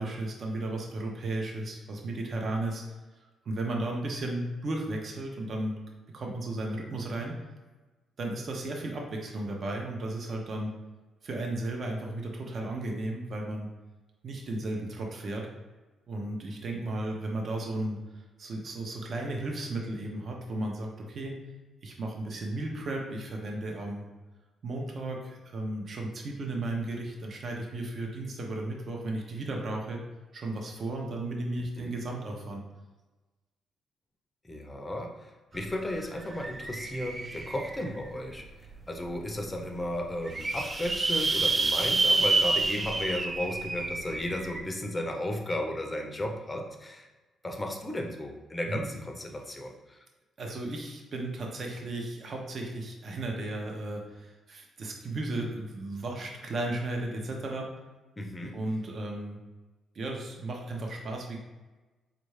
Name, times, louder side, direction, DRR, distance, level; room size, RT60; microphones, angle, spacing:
voice 1, 0.0-2.8 3.4-5.8 6.1-7.3 8.2-10.8 11.2-13.7 14.2-15.5 16.1-18.0 18.4-21.3 21.8-24.1 24.6-30.0 30.3-32.6 48.7-48.8 50.4-57.7 58.5-59.4 59.9-61.4, right 2 dB, 50° right, 0 dB, 0.8 m, -34 dB
voice 2, 34.4-38.5 38.9-47.1 47.4-50.0 58.2-58.6, left 1 dB, 20° left, 2 dB, 0.6 m, -34 dB
sound 1, 35.5-35.6 35.9-38.0 38.6-38.7 39.1-39.2 39.4-39.5 40.0-44.6, right 3 dB, 30° right, 0.4 m, -29 dB
4.5 x 2.5 x 3.2 m, 1.2 s
cardioid pair, 90°, 0 cm